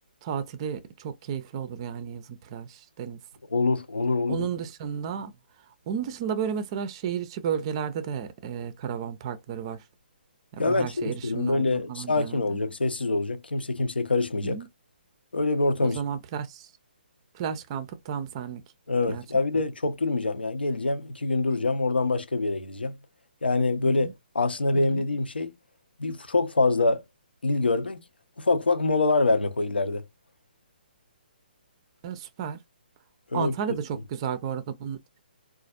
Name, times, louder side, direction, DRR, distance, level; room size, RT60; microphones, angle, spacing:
voice 1, 0.2-3.2 4.3-5.3 5.9-9.8 10.5-12.6 14.4-14.7 15.8-16.7 17.3-18.6 19.1-19.2 23.8-24.1 24.7-25.0 32.0-32.6 33.3-35.2, right 8 dB, 30° right, 0.5 m, -33 dB
voice 2, 3.5-4.5 10.6-14.6 15.3-16.0 18.9-22.9 23.4-25.5 26.0-27.0 27.4-28.0 28.4-30.0 33.3-33.5, left 3 dB, 70° left, 0.8 m, -25 dB
4.0 x 2.4 x 2.4 m
figure-of-eight pair, 135°, 6 cm